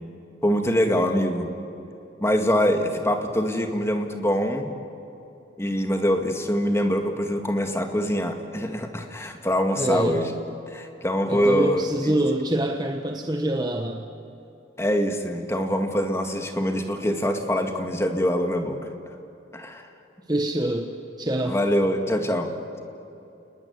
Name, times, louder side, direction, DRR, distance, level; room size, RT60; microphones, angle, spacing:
voice 1, 0.4-1.5 2.2-4.7 5.6-10.3 10.7-12.1 14.8-18.8 19.1-19.2 19.5-19.9 21.4-22.5, equal, 15° left, 5 dB, 2.0 m, -24 dB
voice 2, 9.8-10.2 11.3-14.0 20.3-20.9 21.2-21.6, right 1 dB, 20° right, 4 dB, 1.1 m, -25 dB
30.0 x 20.0 x 9.6 m, 2.8 s
head